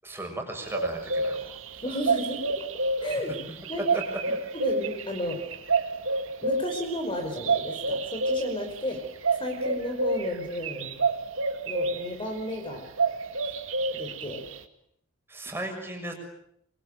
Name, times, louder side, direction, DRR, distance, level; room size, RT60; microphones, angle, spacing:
voice 1, 0.0-1.6 3.9-4.0 15.3-16.1, right 1 dB, 10° right, 3 dB, 6.6 m, -36 dB
sound 1, 0.7-12.2 12.4-14.6, right 3 dB, 70° right, 2.4 m, -29 dB
voice 2, 1.8-2.6 3.0-3.4 3.7-3.8 4.5-5.4 6.4-9.0 9.4-11.0 11.6-12.8 13.9-14.4, left 1 dB, 25° left, 5 dB, 5.1 m, -33 dB
26.5 x 24.5 x 9.0 m, 0.73 s
head